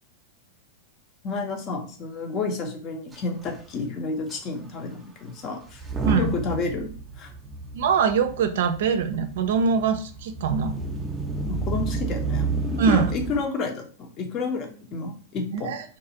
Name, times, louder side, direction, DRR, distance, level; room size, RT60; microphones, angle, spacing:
voice 1, 1.2-5.8 6.1-6.9 7.2-7.3 11.5-12.5 12.9-15.7, left 3 dB, 40° left, 4 dB, 0.6 m, -30 dB
Motor vehicle (road) / Engine starting / Accelerating revving vroom, 3.1-3.2 3.4-3.7 4.3-4.4 5.7-13.4, right 3 dB, 15° right, 0.5 m, -31 dB
voice 2, 6.0-6.4 7.7-10.8 12.8-13.1 15.5-16.0, right 6 dB, 70° right, 8 dB, 0.3 m, -23 dB
2.5 x 2.3 x 2.8 m, 0.40 s
hypercardioid pair, 105°, 0 cm